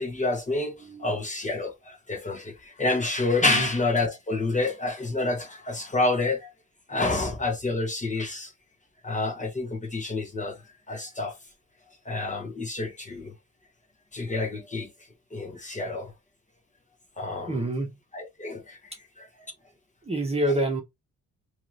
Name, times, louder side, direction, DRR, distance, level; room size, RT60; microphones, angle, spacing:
voice 1, 0.0-6.5 6.9-8.5 9.0-10.6 10.9-11.4 12.0-13.3 14.1-14.9 15.3-16.1 17.2-17.7 18.1-19.3, left 2 dB, 25° left, 1.6 m, -28 dB
voice 2, 17.5-18.0 20.0-20.8, right 1 dB, 20° right, 1.3 m, -27 dB
3.6 x 3.2 x 3.1 m
cardioid pair, 90°, 30 cm